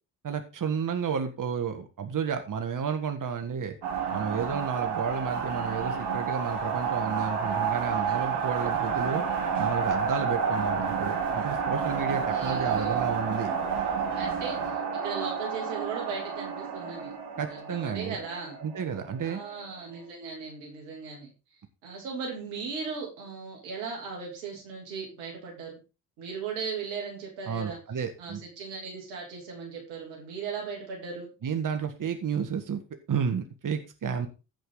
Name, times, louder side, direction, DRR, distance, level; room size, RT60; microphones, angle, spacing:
voice 1, 0.2-3.8 4.1-9.2 9.6-13.5 17.4-18.2 18.6-19.4 27.5-28.4 31.4-32.8 33.1-34.3, right 6 dB, 45° right, 7 dB, 1.5 m, -31 dB
sound 1, 3.8-19.6, right 6 dB, 60° right, 3.6 m, -30 dB
voice 2, 12.3-13.1 14.1-17.1 17.5-18.6 19.2-21.3 21.8-25.8 26.2-27.8 28.2-31.3, right 5 dB, 85° right, 0 dB, 3.1 m, -37 dB
15.5 x 5.2 x 3.9 m, 0.31 s
hypercardioid pair, 45°, 45 cm